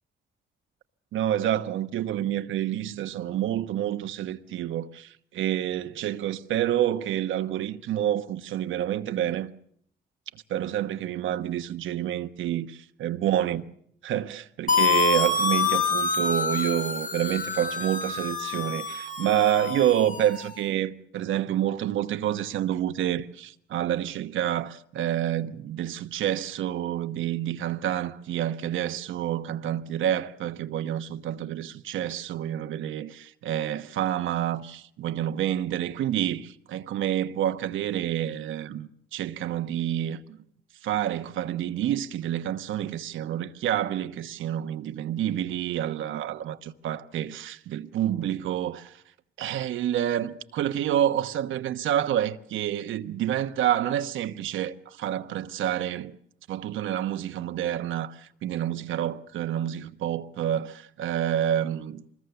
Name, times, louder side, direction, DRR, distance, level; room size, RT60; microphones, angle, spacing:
voice 1, 1.1-9.5 10.5-12.7 13.0-13.6 14.0-40.4 40.8-49.0 49.4-56.2 56.5-62.0, right 11 dB, 80° right, 1.1 m, -28 dB
sound 1, 14.7-20.5, left 5 dB, 40° left, 1.7 m, -27 dB
24.5 x 21.0 x 6.9 m
cardioid pair, 90°, 20 cm